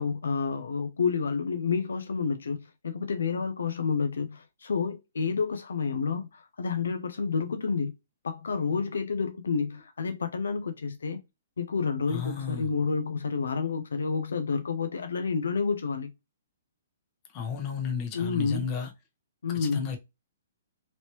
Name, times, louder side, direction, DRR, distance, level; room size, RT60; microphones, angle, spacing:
voice 1, 0.0-7.9 8.2-11.2 11.6-16.1 18.1-18.6 19.4-19.9, left 5 dB, 85° left, 0.4 m, -29 dB
voice 2, 12.1-12.7 17.3-18.9 19.6-20.0, left 6 dB, 35° left, 0.8 m, -33 dB
3.0 x 2.7 x 3.0 m
hypercardioid pair, 140°, 0 cm